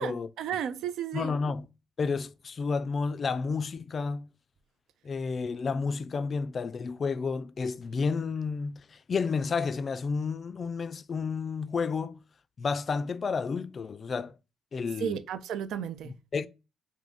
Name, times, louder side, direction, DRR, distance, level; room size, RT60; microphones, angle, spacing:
voice 1, 0.0-1.3 15.0-16.1, right 9 dB, 80° right, 0.5 m, -33 dB
voice 2, 1.1-1.7 2.0-4.3 5.0-12.2 12.6-14.3 14.7-15.2 16.1-16.5, left 5 dB, 45° left, 0.3 m, -31 dB
3.5 x 2.7 x 3.7 m
cardioid pair, 90°, 0 cm